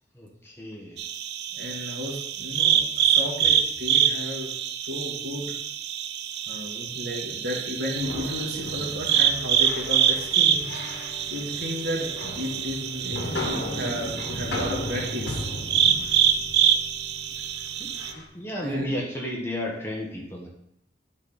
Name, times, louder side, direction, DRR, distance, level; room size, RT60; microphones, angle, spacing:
voice 1, 0.1-1.0 17.8-20.5, left 1 dB, 15° left, -2 dB, 1.2 m, -33 dB
sound 1, 1.0-18.1, right 9 dB, 65° right, 0.4 m, -26 dB
voice 2, 1.5-4.5 4.8-5.6 6.5-10.6 11.3-15.4 15.8-16.0 18.6-19.0, left 1 dB, 90° right, -3 dB, 2.2 m, -33 dB
sound 2, 8.0-18.2, left 2 dB, 80° left, 1.3 m, -36 dB
sound 3, 9.6-19.4, equal, 15° right, 2.3 m, -48 dB
9.7 x 4.2 x 4.1 m, 0.76 s
head